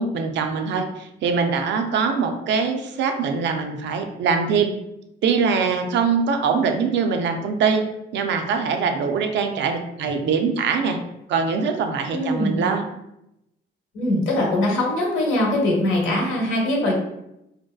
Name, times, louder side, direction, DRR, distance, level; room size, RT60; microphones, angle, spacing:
voice 1, 0.0-4.7 5.2-7.8 8.1-11.0 11.3-12.9, right 5 dB, 65° right, 5 dB, 0.4 m, -23 dB
voice 2, 12.1-12.6 13.9-16.9, left 1 dB, 85° left, -2 dB, 0.8 m, -22 dB
2.6 x 2.2 x 2.3 m, 0.84 s
cardioid pair, 90°, 20 cm